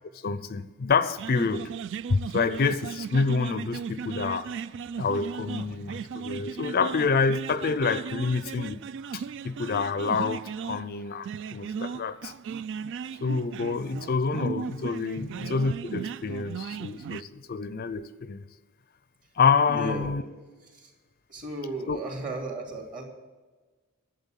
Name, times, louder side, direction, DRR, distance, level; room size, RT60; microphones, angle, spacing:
voice 1, 0.2-1.7 2.1-4.5 5.0-8.8 9.1-12.3 13.2-18.4 19.4-20.2 21.9-22.0, left 5 dB, 45° left, 14 dB, 0.5 m, -27 dB
sound 1, 1.2-17.2, right 6 dB, 60° right, 0.3 m, -36 dB
voice 2, 19.7-20.1 20.7-20.9 21.3-23.0, right 2 dB, 40° right, 2 dB, 2.6 m, -34 dB
11.5 x 7.6 x 9.0 m, 1.3 s
head